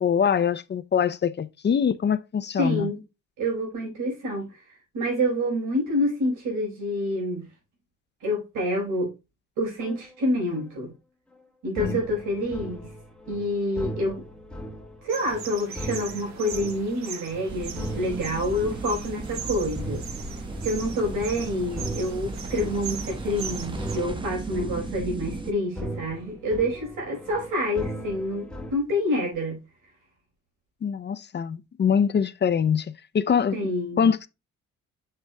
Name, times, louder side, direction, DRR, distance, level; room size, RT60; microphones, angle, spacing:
voice 1, 0.0-2.9 11.8-12.0 30.8-32.9 33.1-34.3, left 7 dB, 35° left, 0.6 m, -24 dB
voice 2, 2.6-3.0 3.4-4.6 4.9-7.4 8.2-9.1 9.6-10.9 11.6-12.9 13.3-14.2 15.0-20.0 20.6-29.6 33.5-34.0, equal, 90° right, 4.6 m, -27 dB
sound 1, 9.8-10.1 10.5-10.8 11.8-28.7, right 1 dB, 5° left, 1.9 m, -39 dB
sound 2, 15.1-24.0, right 7 dB, 65° right, 1.4 m, -40 dB
sound 3, 17.5-25.5, right 3 dB, 15° right, 1.1 m, -36 dB
8.0 x 6.8 x 2.2 m
cardioid pair, 90°, 30 cm